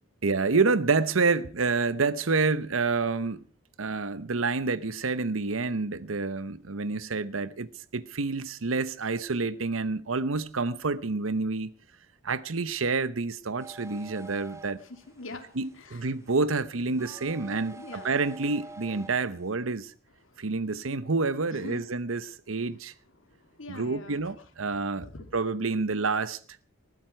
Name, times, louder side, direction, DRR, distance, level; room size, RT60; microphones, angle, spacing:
voice 1, 0.2-3.4 3.8-11.7 12.2-14.8 15.6-19.9 20.4-22.9 23.7-25.1 25.3-26.4, right 4 dB, 85° right, 0.9 m, -28 dB
sound 1, 13.6-19.5, right 2 dB, 15° right, 0.7 m, -48 dB
voice 2, 14.8-16.1 17.7-18.1 20.2-20.5 21.5-21.9 23.2-24.3 24.6-25.3, left 2 dB, 75° left, 2.6 m, -45 dB
20.0 x 14.5 x 4.5 m
head